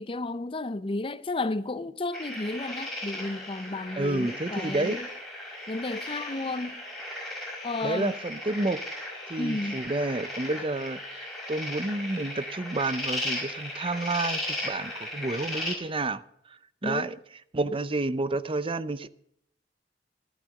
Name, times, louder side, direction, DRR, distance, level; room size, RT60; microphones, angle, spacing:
voice 1, 0.0-5.1 5.7-6.7 7.6-8.1 9.4-9.8 16.8-17.1, left 2 dB, 30° left, 0.6 m, -32 dB
sound 1, 2.1-15.7, left 1 dB, ahead, 5.1 m, -36 dB
voice 2, 3.9-5.0 7.8-8.8 9.3-17.2 17.5-19.1, right 2 dB, 30° right, 0.6 m, -30 dB
14.0 x 12.0 x 6.5 m
head